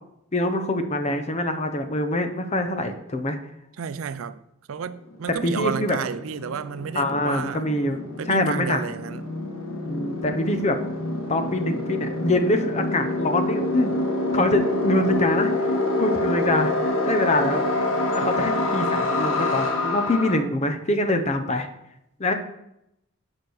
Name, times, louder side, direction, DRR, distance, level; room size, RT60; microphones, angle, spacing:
voice 1, 0.3-3.4 5.3-6.0 6.9-8.0 8.3-8.8 9.9-10.8 11.3-13.9 14.3-15.7 16.0-16.7 17.1-17.6 18.1-21.7 22.2-22.3, left 1 dB, 35° left, 0.8 m, -24 dB
voice 2, 3.8-4.4 4.7-7.7 8.2-9.2, right 7 dB, 80° right, 0.4 m, -31 dB
sound 1, 4.8-4.9 5.1-20.4, left 2 dB, 80° left, 1.8 m, -26 dB
7.0 x 4.8 x 6.3 m
head